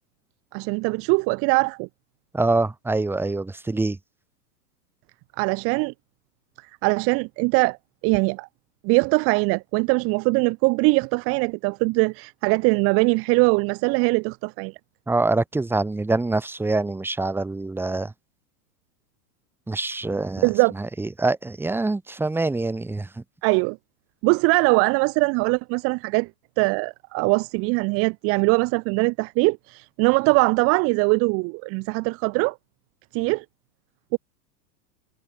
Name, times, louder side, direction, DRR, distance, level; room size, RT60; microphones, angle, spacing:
voice 1, 0.5-1.9 5.4-5.9 6.8-7.8 8.0-8.5 8.8-14.8 20.4-20.7 23.4-23.8 24.2-26.3 26.6-32.5 33.1-33.4 34.1-34.2, right 30 dB, 30° right, 1.0 m, -21 dB
voice 2, 2.3-4.0 15.1-18.1 19.7-23.2, right 2 dB, 5° right, 2.3 m, -25 dB
supercardioid pair, 155°, 49 cm